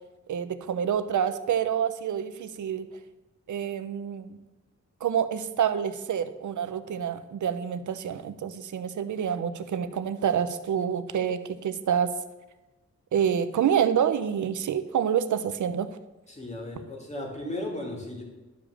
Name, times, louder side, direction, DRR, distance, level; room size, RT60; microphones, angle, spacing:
voice 1, 0.3-2.9 3.5-4.4 5.0-12.1 13.1-15.9, right 8 dB, 90° right, 12 dB, 0.8 m, -27 dB
voice 2, 16.3-18.2, left 1 dB, 25° left, 0 dB, 2.6 m, -35 dB
11.5 x 5.1 x 7.2 m, 1.1 s
wide cardioid pair, 160°, 29 cm